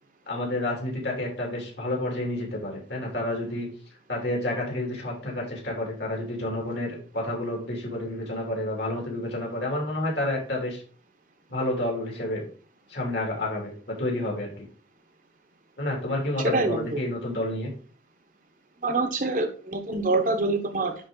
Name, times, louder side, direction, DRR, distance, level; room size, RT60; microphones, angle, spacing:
voice 1, 0.3-3.7 4.1-10.8 11.5-12.4 12.9-13.7 14.0-14.5 15.8-17.7, left 1 dB, 60° left, -1 dB, 2.8 m, -29 dB
voice 2, 16.4-16.9 18.8-21.1, right 2 dB, 45° right, 6 dB, 1.0 m, -25 dB
9.8 x 3.7 x 3.8 m, 0.40 s
head